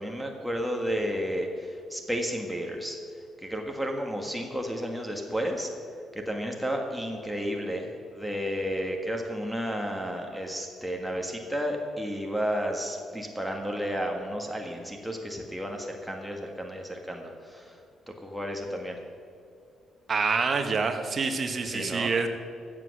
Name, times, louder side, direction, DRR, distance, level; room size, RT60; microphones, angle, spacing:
voice 1, 0.0-3.0 3.4-5.7 6.1-17.8 18.1-19.0 21.7-22.1, equal, ahead, 1 dB, 1.6 m, -32 dB
voice 2, 20.1-22.3, right 4 dB, 40° right, 5 dB, 1.4 m, -27 dB
14.0 x 7.9 x 6.5 m, 2.4 s
cardioid pair, 90°, 0 cm